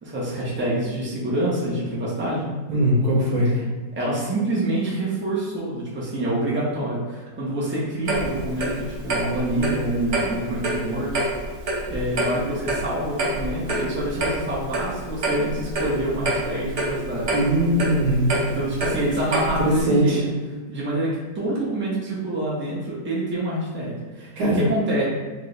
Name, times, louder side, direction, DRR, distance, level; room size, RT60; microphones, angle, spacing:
voice 1, 0.0-2.5 3.4-3.7 3.9-8.7 9.0-11.2 11.9-17.4 18.4-20.1 20.7-25.0, right 1 dB, 10° right, -7 dB, 0.9 m, -26 dB
voice 2, 2.7-3.5 17.3-18.3 19.6-20.2 24.4-24.6, right 1 dB, 85° right, -4 dB, 1.7 m, -20 dB
Clock, 8.1-19.8, right 2 dB, 45° right, 1.0 m, -27 dB
4.9 x 2.6 x 3.3 m, 1.3 s
omnidirectional pair, 1.7 m